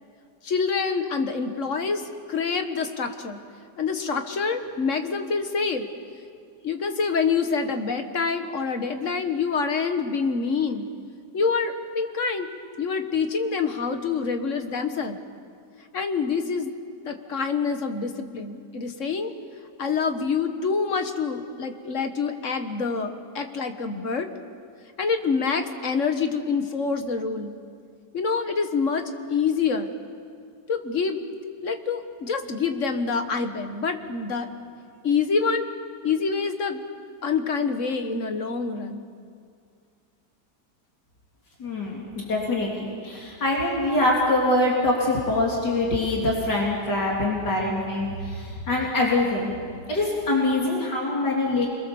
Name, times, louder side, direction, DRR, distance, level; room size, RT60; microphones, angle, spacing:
voice 1, 0.4-2.0 2.3-3.4 3.8-5.9 6.6-10.9 11.3-12.5 12.8-15.2 15.9-16.7 17.0-19.3 19.8-24.3 25.0-27.5 28.1-29.9 30.7-31.2 31.6-34.5 35.0-35.7 36.0-36.8 37.2-39.0, left 5 dB, 50° left, 7 dB, 1.7 m, -26 dB
voice 2, 41.6-49.5 49.9-51.7, left 2 dB, 85° left, -3 dB, 3.7 m, -24 dB
28.0 x 22.0 x 7.1 m, 2.2 s
omnidirectional pair, 1.8 m